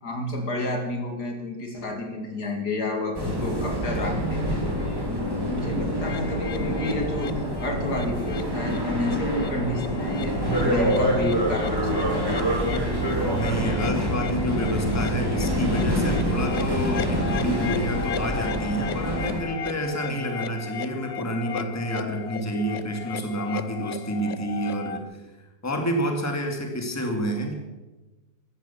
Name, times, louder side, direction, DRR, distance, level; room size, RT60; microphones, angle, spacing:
voice 1, 0.0-4.6 5.1-12.3 20.1-20.2, left 1 dB, 60° left, 3 dB, 2.7 m, -30 dB
sound 1, 3.1-19.4, equal, 10° right, 3.0 m, -26 dB
sound 2, 6.0-25.0, left 8 dB, 85° left, 0.5 m, -37 dB
sound 3, 10.8-18.2, right 2 dB, 60° right, 2.6 m, -38 dB
voice 2, 13.2-25.0 25.6-27.5, equal, 10° left, 3 dB, 2.2 m, -29 dB
15.0 x 13.0 x 7.1 m, 1.1 s
omnidirectional pair, 2.0 m